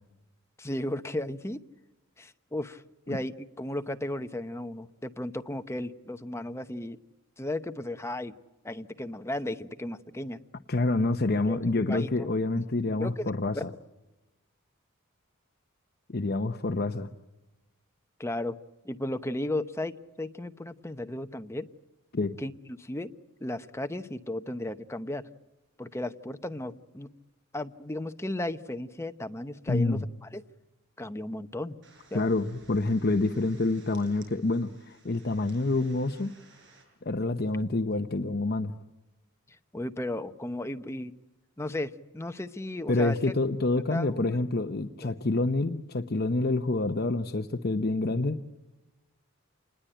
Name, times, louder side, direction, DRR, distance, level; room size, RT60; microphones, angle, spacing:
voice 1, 0.6-1.6 2.2-7.0 7.4-8.3 8.6-10.4 11.5-12.3 13.0-13.6 18.2-18.6 18.8-21.7 22.4-23.1 23.4-25.2 25.8-27.1 27.5-30.4 31.0-31.8 32.1-32.3 39.7-41.1 41.6-43.2 43.9-44.2 45.0-45.1, left 1 dB, 15° left, 9 dB, 0.8 m, -35 dB
voice 2, 10.7-13.7 16.1-17.1 22.1-22.3 29.7-30.0 32.1-36.3 37.0-38.7 42.9-48.4, left 2 dB, 45° left, 8 dB, 0.8 m, -27 dB
sound 1, 31.8-36.8, right 3 dB, 55° right, 7.5 m, -57 dB
27.5 x 20.5 x 9.1 m, 1.0 s
head